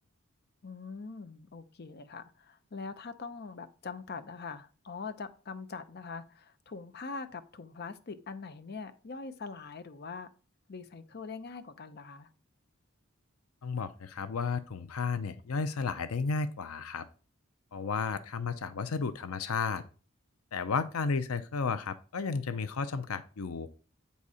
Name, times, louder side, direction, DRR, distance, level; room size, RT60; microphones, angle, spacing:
voice 1, 0.6-10.3 10.7-12.3, left 4 dB, 50° left, 0.7 m, -43 dB
voice 2, 13.6-17.1 17.7-19.8 20.5-23.7, left 5 dB, 90° left, 0.6 m, -33 dB
8.3 x 4.2 x 4.9 m
head